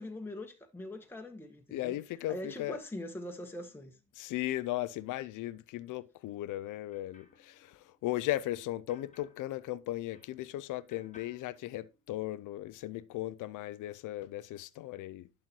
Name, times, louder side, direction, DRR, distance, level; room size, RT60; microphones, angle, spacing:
voice 1, 0.0-2.0 2.3-4.0, left 1 dB, 5° left, 1.4 m, -42 dB
voice 2, 1.7-2.8 4.1-15.3, left 15 dB, 85° left, 0.6 m, -37 dB
sound 1, 6.5-10.6 10.9-12.4, left 4 dB, 25° left, 1.7 m, -64 dB
11.5 x 4.4 x 4.5 m
cardioid pair, 90°, 30 cm